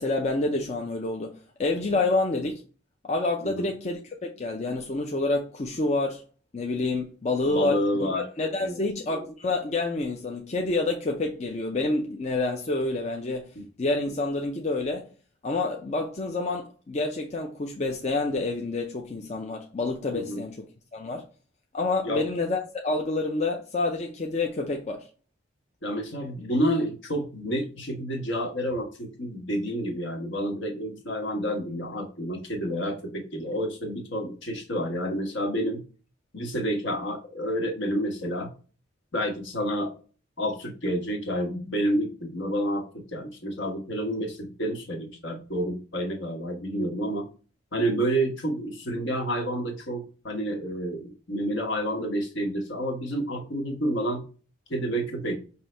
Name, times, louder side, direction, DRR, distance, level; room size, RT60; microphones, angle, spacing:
voice 1, 0.0-2.6 3.1-6.2 6.5-7.8 8.1-13.5 13.8-15.1 15.4-20.6 20.9-21.2 21.7-25.1, left 2 dB, 35° left, 0.5 m, -28 dB
voice 2, 7.4-8.2 8.6-8.8 13.5-13.7 20.1-20.4 22.0-22.3 25.8-35.8 36.3-38.5 39.1-39.9 40.4-47.3 47.7-54.3 54.7-55.4, equal, 65° left, 1.3 m, -29 dB
5.5 x 2.7 x 3.3 m
head